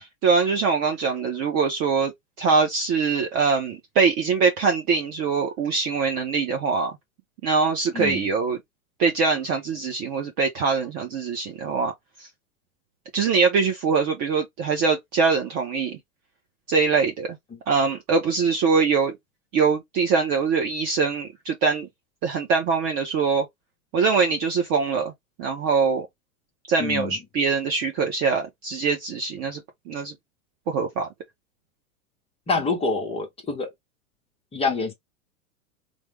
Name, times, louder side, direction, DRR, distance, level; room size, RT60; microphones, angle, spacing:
voice 1, 0.2-2.1 2.4-6.9 7.4-8.6 9.0-11.9 12.2-12.3 13.1-16.0 16.7-17.4 17.7-19.2 19.5-21.9 22.2-23.5 23.9-25.1 25.4-26.1 26.7-30.1 30.7-31.1, right 5 dB, 25° right, 0.3 m, -23 dB
voice 2, 26.8-27.1 32.5-33.7 34.5-34.9, left 4 dB, 15° left, 0.6 m, -26 dB
3.2 x 2.0 x 3.3 m
hypercardioid pair, 115°, 45 cm